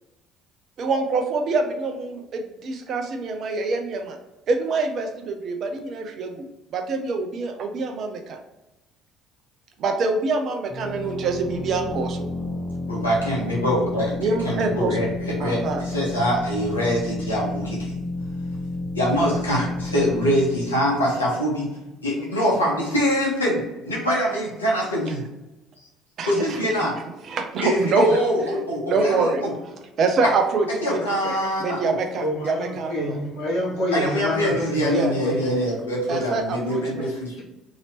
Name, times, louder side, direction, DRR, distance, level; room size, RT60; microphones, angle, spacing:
voice 1, 0.8-4.2 4.5-6.5 6.7-8.4 9.8-12.3 14.2-15.0 15.4-15.9 26.2-26.6 27.2-28.1 28.9-29.4 30.0-33.2 34.9-35.2 36.1-37.1, right 4 dB, 50° right, 5 dB, 0.6 m, -25 dB
sound 1, 10.7-22.2, left 2 dB, 20° left, 1.1 m, -31 dB
voice 2, 12.9-14.2 14.4-17.9 18.9-21.7 22.0-25.2 26.3-27.0 27.6-29.5 30.2-30.3 30.7-31.9 33.9-37.3, equal, 90° left, -4 dB, 0.9 m, -24 dB
voice 3, 32.2-35.4, left 1 dB, 65° left, -4 dB, 1.2 m, -27 dB
2.9 x 2.8 x 2.9 m, 0.99 s
figure-of-eight pair, 55°, 0 cm